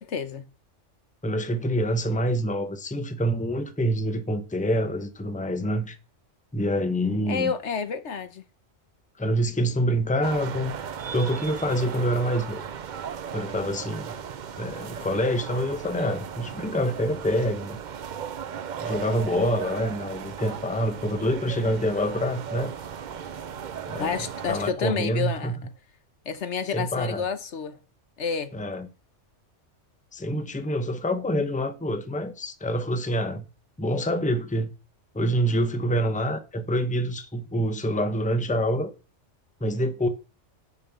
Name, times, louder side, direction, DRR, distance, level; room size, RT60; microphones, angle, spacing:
voice 1, 0.0-0.4 7.3-8.4 24.0-25.6 26.2-27.8 28.2-28.5, left 6 dB, 70° left, 1.3 m, -29 dB
voice 2, 1.2-6.0 6.5-7.5 9.2-10.7 11.1-12.6 13.3-14.1 14.6-17.8 18.8-22.7 23.9-25.6 26.7-27.2 28.5-28.9 30.1-33.5 33.8-34.7 35.1-38.9 39.6-40.1, equal, 5° left, 0.9 m, -26 dB
sound 1, 10.2-24.7, right 7 dB, 50° right, 0.6 m, -36 dB
6.9 x 6.2 x 7.1 m
omnidirectional pair, 1.2 m